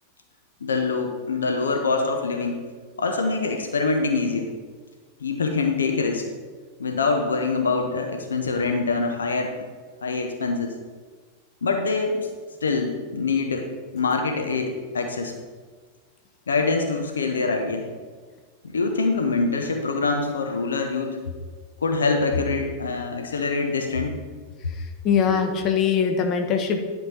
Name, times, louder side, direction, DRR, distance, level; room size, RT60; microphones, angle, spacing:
voice 1, 0.6-2.6 3.0-4.5 5.2-6.3 6.8-9.7 10.0-10.8 11.6-12.3 12.6-15.3 16.5-17.9 18.7-21.2 21.8-24.2, left 4 dB, 70° left, 4 dB, 0.8 m, -24 dB
voice 2, 25.0-26.8, left 7 dB, 35° left, 5 dB, 1.0 m, -21 dB
11.0 x 4.7 x 5.5 m, 1.5 s
figure-of-eight pair, 90°, 0 cm